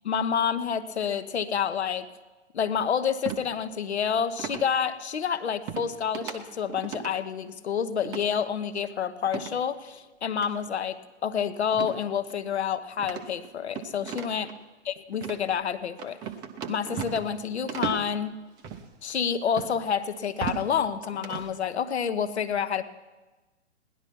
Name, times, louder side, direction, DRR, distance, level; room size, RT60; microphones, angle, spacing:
voice 1, 0.0-2.1 2.5-14.5 14.8-16.2 16.7-18.4 19.0-22.8, left 7 dB, 65° left, 13 dB, 0.9 m, -28 dB
sound 1, 3.2-3.4 4.4-4.7 5.7-5.9 6.1-6.4 6.7-7.1 8.0-8.2 9.3-9.6 10.3-10.5 11.7-12.0 12.3-12.4 13.0-14.5 15.1-15.4 16.0-17.4 17.7-18.1 18.6-18.8 19.6-19.7 20.2-20.7 21.0-21.5, right 8 dB, 10° right, 0.5 m, -35 dB
17.5 x 11.0 x 6.0 m, 1.2 s
figure-of-eight pair, 120°, 36 cm